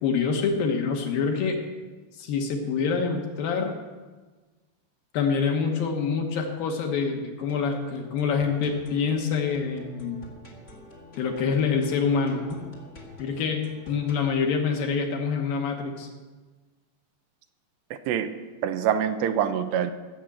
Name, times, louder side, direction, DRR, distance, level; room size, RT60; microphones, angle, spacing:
voice 1, 0.0-1.6 2.1-3.7 5.1-10.2 11.2-12.6 13.2-16.1, left 5 dB, 65° left, 3 dB, 2.6 m, -26 dB
sound 1, 7.4-14.3, left 2 dB, 40° left, 1.0 m, -47 dB
voice 2, 17.9-18.3 18.6-19.9, right 9 dB, 85° right, 10 dB, 2.8 m, -25 dB
16.5 x 7.1 x 7.7 m, 1.3 s
omnidirectional pair, 5.0 m